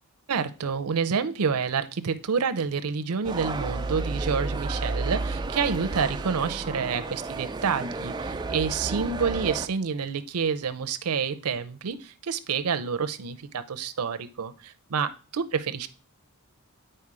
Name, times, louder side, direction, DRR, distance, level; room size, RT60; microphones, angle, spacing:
voice 1, 0.3-15.9, right 6 dB, 85° right, 11 dB, 0.6 m, -28 dB
sound 1, 3.2-9.7, right 3 dB, 20° right, 0.4 m, -32 dB
8.8 x 4.4 x 4.8 m, 0.35 s
head